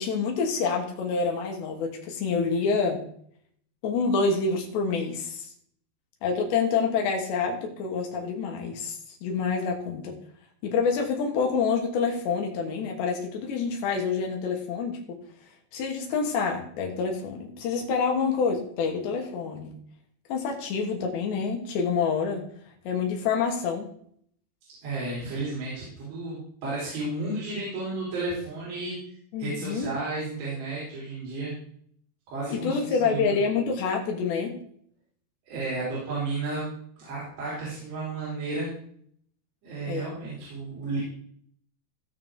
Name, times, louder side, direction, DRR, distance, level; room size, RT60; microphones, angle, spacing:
voice 1, 0.0-3.0 3.8-5.5 6.2-10.2 10.6-15.2 15.7-19.8 20.3-22.5 22.9-23.9 29.3-29.9 32.5-34.6 39.9-40.1, left 5 dB, 75° left, 2 dB, 3.7 m, -27 dB
voice 2, 24.8-29.0 29.4-31.5 32.3-33.3 35.5-36.7 37.0-38.7 39.6-41.0, right 2 dB, 75° right, -7 dB, 6.1 m, -32 dB
17.5 x 6.7 x 3.8 m, 0.63 s
omnidirectional pair, 5.1 m